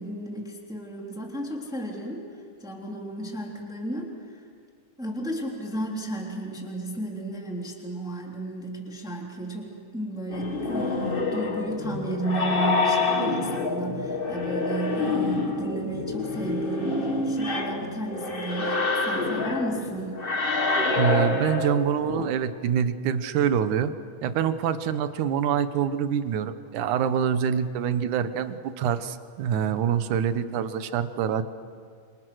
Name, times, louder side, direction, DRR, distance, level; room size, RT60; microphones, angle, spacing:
voice 1, 0.0-2.3 2.6-4.4 5.0-16.9 17.2-20.1, right 1 dB, ahead, -1 dB, 3.0 m, -33 dB
sound 1, 10.3-22.3, left 3 dB, 30° left, 1.1 m, -27 dB
voice 2, 21.0-23.9 24.2-31.4, right 8 dB, 75° right, 11 dB, 2.4 m, -25 dB
29.0 x 26.0 x 6.4 m, 2.1 s
omnidirectional pair, 3.7 m